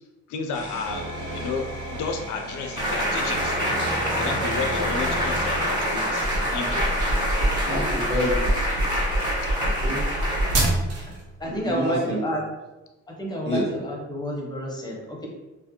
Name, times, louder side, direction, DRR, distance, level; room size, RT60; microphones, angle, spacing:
voice 1, 0.3-1.0 1.3-1.7 1.9-3.6 4.2-6.3 6.5-6.8 7.1-7.2, left 5 dB, 80° left, 4 dB, 0.5 m, -32 dB
sound 1, 0.5-5.6, right 2 dB, 80° right, 1.0 m, -34 dB
sound 2, 2.8-10.6, equal, 15° right, 1.3 m, -26 dB
sound 3, 6.2-11.2, right 1 dB, 55° right, 0.7 m, -25 dB
voice 2, 7.7-8.7 9.6-10.0 11.4-12.2 13.4-13.6, left 1 dB, 35° right, -7 dB, 1.1 m, -28 dB
voice 3, 11.4-12.4 13.1-15.3, equal, 15° left, -1 dB, 0.6 m, -29 dB
2.4 x 2.0 x 2.7 m, 1.1 s
cardioid pair, 90°, 30 cm